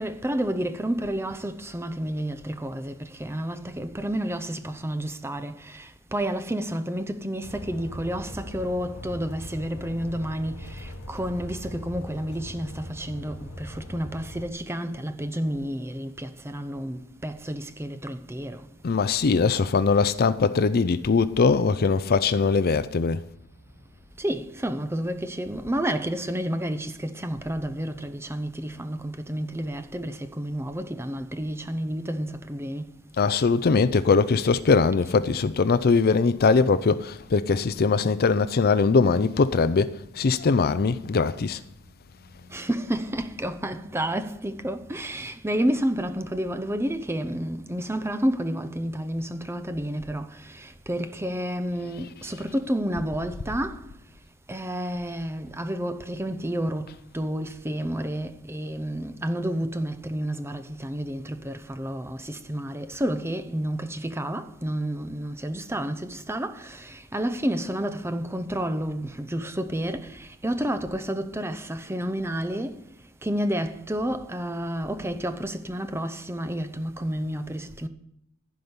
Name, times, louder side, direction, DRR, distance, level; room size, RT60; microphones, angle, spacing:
voice 1, 0.0-18.7 24.2-32.9 42.4-53.9 54.5-72.9 73.2-77.9, right 1 dB, 10° right, 0.7 m, -30 dB
sound 1, 7.4-14.5, left 1 dB, 85° left, 1.5 m, -40 dB
voice 2, 18.8-23.2 33.2-41.6, left 4 dB, 45° left, 0.5 m, -21 dB
15.0 x 5.2 x 9.6 m
head